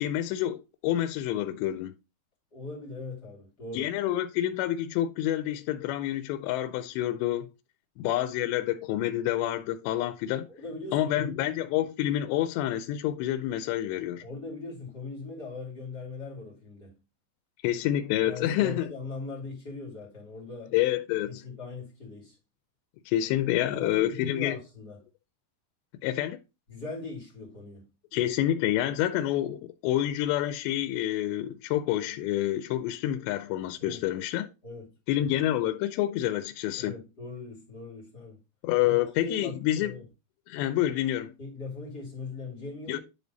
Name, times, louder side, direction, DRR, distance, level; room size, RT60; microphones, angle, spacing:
voice 1, 0.0-2.0 3.7-7.5 8.0-10.5 10.9-14.3 17.6-18.9 20.7-21.4 23.1-24.6 26.0-26.4 28.1-34.5 35.1-37.0 38.6-39.9 40.5-41.3 42.9-43.0, left 13 dB, 85° left, 2.8 m, -28 dB
voice 2, 2.5-3.9 10.5-11.3 14.2-17.0 18.2-20.8 21.3-22.3 23.5-25.0 26.7-27.9 33.8-34.1 34.6-34.9 36.8-38.4 38.8-40.1 41.4-43.0, left 3 dB, 30° left, 2.1 m, -40 dB
10.0 x 3.4 x 4.0 m
omnidirectional pair, 4.9 m